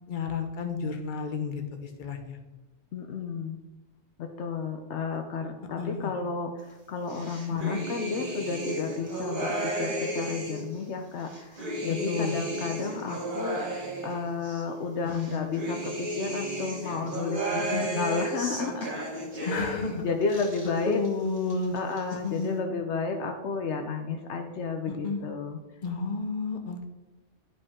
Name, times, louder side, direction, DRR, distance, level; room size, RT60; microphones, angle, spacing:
voice 1, 0.1-2.4 5.8-6.1 7.6-7.8 12.1-12.3 15.0-15.5 17.7-18.1 19.4-20.1 20.9-21.8 22.2-22.6 24.9-25.2 25.8-26.8, left 4 dB, 45° left, 4 dB, 1.0 m, -31 dB
voice 2, 2.9-3.6 4.2-18.9 19.4-21.0 21.7-25.6, left 4 dB, 75° left, 5 dB, 0.9 m, -32 dB
sound 1, 7.1-10.7 11.2-14.6 15.1-19.9 20.2-21.1 21.4-22.1, right 1 dB, 45° right, 1.7 m, -33 dB
11.0 x 5.1 x 3.6 m, 1.1 s
omnidirectional pair, 1.2 m